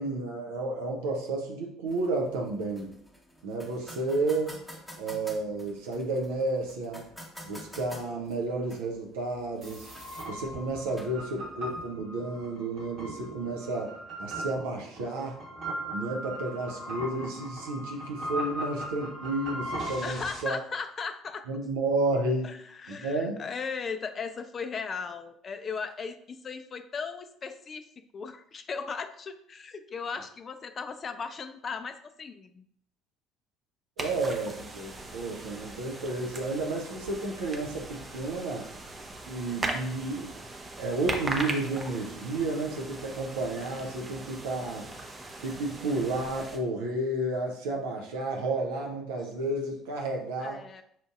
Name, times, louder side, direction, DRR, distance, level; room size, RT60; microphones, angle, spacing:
voice 1, 0.0-2.9 3.4-4.6 5.0-7.0 7.4-9.9 10.3-13.9 14.2-15.3 15.9-20.6 21.5-22.5 22.9-23.4 34.0-38.7 39.3-40.3 40.8-44.9 45.4-50.6, right 2 dB, 70° right, 0 dB, 0.6 m, -31 dB
sound 1, 1.9-11.9, equal, ahead, 1.0 m, -50 dB
sound 2, 9.6-20.4, right 1 dB, 45° right, 1.2 m, -38 dB
voice 2, 20.0-21.5 22.4-27.8 28.1-32.6 39.8-39.9 40.2-40.3 50.4-50.8, left 5 dB, 35° left, 9 dB, 0.3 m, -37 dB
sound 3, 34.0-46.6, right 2 dB, 25° right, 0.6 m, -39 dB
5.7 x 2.6 x 2.4 m, 0.68 s
figure-of-eight pair, 55°, 0 cm